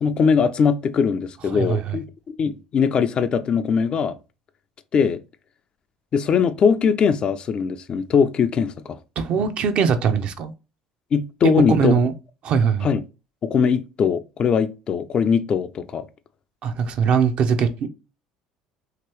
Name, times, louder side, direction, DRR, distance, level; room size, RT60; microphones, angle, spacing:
voice 1, 0.0-4.1 4.9-5.2 6.1-9.0 11.1-11.9 12.8-13.0 13.4-16.1, left 6 dB, 40° left, 0.4 m, -21 dB
voice 2, 1.5-2.0 9.2-10.5 11.7-12.1 12.4-12.9 16.6-17.9, right 6 dB, 50° right, 0.5 m, -21 dB
2.9 x 2.9 x 3.0 m
hypercardioid pair, 65°, 2 cm